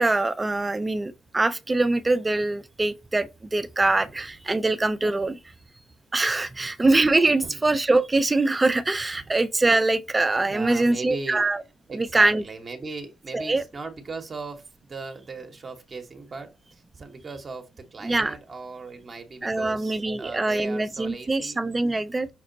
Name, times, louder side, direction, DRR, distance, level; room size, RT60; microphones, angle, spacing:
voice 1, 0.0-5.4 6.1-11.6 11.9-12.4 13.3-13.6 18.0-18.3 19.4-22.3, right 2 dB, 20° right, 0.5 m, -23 dB
voice 2, 10.5-11.5 11.9-21.6, right 3 dB, 40° right, 0.9 m, -38 dB
5.9 x 2.1 x 3.8 m
cardioid pair, 80°, 0 cm